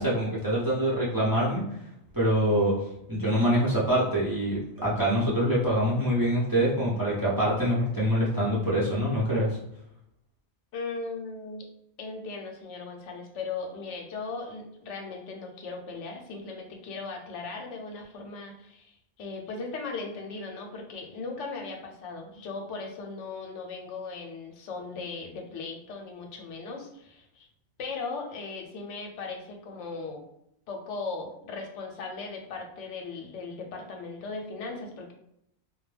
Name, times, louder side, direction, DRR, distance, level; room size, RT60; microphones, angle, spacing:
voice 1, 0.0-1.6 2.1-2.7 3.1-9.5, equal, 25° right, -8 dB, 0.6 m, -25 dB
voice 2, 10.7-11.7 12.0-27.5 27.8-30.2 30.7-35.1, left 4 dB, 85° left, 2 dB, 0.9 m, -38 dB
2.2 x 2.2 x 3.2 m, 0.77 s
omnidirectional pair, 1.2 m